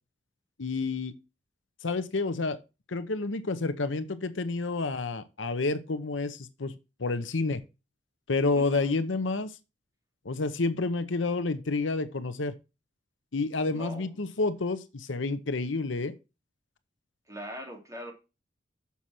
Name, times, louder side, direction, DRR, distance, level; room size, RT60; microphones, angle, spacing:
voice 1, 0.6-1.1 1.8-2.6 2.9-6.7 7.0-7.6 8.3-9.5 10.2-12.5 13.3-16.1, left 3 dB, 85° left, 0.9 m, -29 dB
voice 2, 8.5-8.9 13.7-14.2 17.3-18.1, equal, 15° right, 3.0 m, -41 dB
7.1 x 6.2 x 4.3 m
head